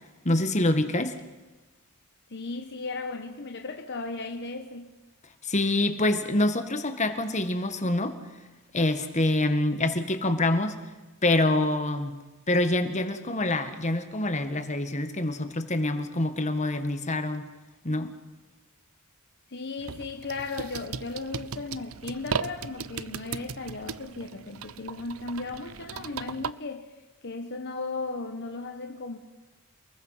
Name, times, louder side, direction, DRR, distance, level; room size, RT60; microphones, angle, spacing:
voice 1, 0.2-1.2 5.4-8.2 8.7-10.8 11.2-12.2 12.5-17.5 17.8-18.1, left 1 dB, 35° left, 1.9 m, -26 dB
voice 2, 2.3-4.9 19.5-26.9 27.2-29.2, left 3 dB, 55° left, 1.3 m, -36 dB
sound 1, 19.8-26.5, right 6 dB, 75° right, 0.7 m, -37 dB
29.0 x 20.5 x 5.8 m
head